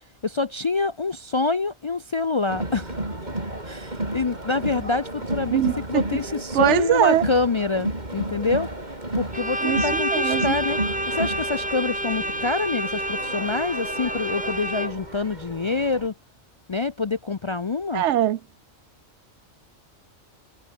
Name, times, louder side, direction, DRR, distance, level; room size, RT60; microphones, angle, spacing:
voice 1, 0.2-3.0 3.6-8.7 9.1-10.8 11.1-16.1 16.7-18.0, left 3 dB, 40° left, 0.4 m, -26 dB
Crowd, 2.5-16.1, right 1 dB, 40° right, 5.0 m, -32 dB
voice 2, 5.5-6.0 6.5-7.2 9.6-9.8 10.1-10.6 17.9-18.4, right 12 dB, 80° right, 0.9 m, -21 dB
Bowed string instrument, 9.3-15.2, right 1 dB, 5° right, 1.4 m, -29 dB
omnidirectional pair, 1.2 m